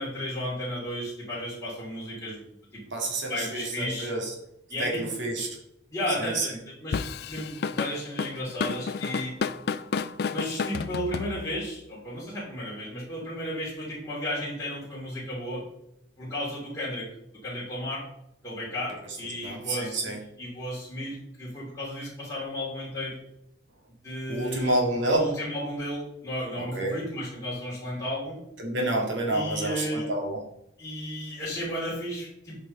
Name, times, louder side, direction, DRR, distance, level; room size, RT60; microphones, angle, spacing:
voice 1, 0.0-2.4 2.7-2.8 3.3-4.1 4.7-5.1 5.9-6.5 6.8-9.3 10.3-15.6 16.2-18.0 18.4-20.1 20.4-23.2 24.0-24.7 25.1-28.4 29.3-30.1 30.8-32.6, equal, 15° left, -8 dB, 2.7 m, -33 dB
voice 2, 2.9-4.3 4.8-5.5 6.2-6.5 19.0-19.2 19.4-20.2 24.3-25.4 26.6-27.0 28.6-30.4, right 2 dB, 75° right, 1 dB, 2.0 m, -28 dB
Drum kit / Drum, 6.9-11.7, left 5 dB, 55° left, 0.3 m, -31 dB
8.6 x 5.1 x 4.0 m, 0.79 s
head